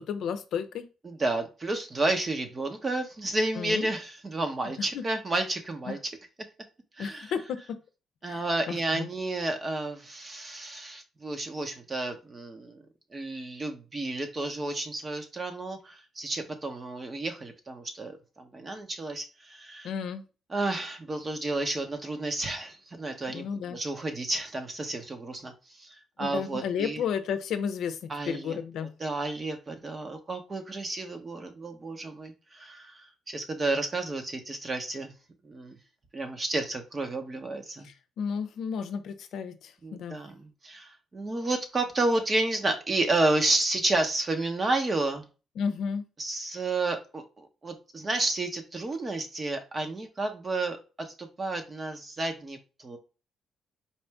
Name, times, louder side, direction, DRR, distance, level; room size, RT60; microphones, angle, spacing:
voice 1, 0.0-0.9 3.6-3.9 4.9-5.0 5.9-6.0 7.0-7.8 8.2-9.1 19.8-20.2 23.3-23.8 26.2-28.9 37.8-40.2 45.6-46.1, left 7 dB, 75° left, 9 dB, 0.5 m, -33 dB
voice 2, 1.0-6.0 7.0-7.3 8.2-12.8 13.1-19.9 20.5-27.0 28.1-28.6 29.0-35.1 35.4-35.8 36.1-37.9 39.8-45.3 46.2-53.0, right 2 dB, 30° right, 5 dB, 1.0 m, -31 dB
4.3 x 2.6 x 3.4 m, 0.32 s
cardioid pair, 90°, 0 cm